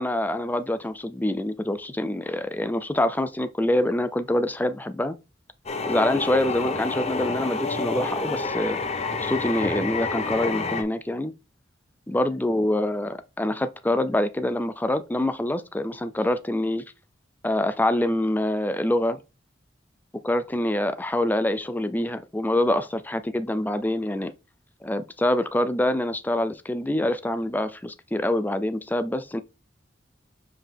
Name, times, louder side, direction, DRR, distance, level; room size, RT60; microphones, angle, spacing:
voice 1, 0.0-5.2 5.9-8.8 9.2-11.3 12.1-16.9 17.4-19.2 20.2-24.3 24.8-29.4, left 1 dB, 10° left, 0.5 m, -25 dB
sound 1, 5.7-10.8, left 3 dB, 35° left, 0.8 m, -28 dB
5.7 x 4.8 x 3.5 m
head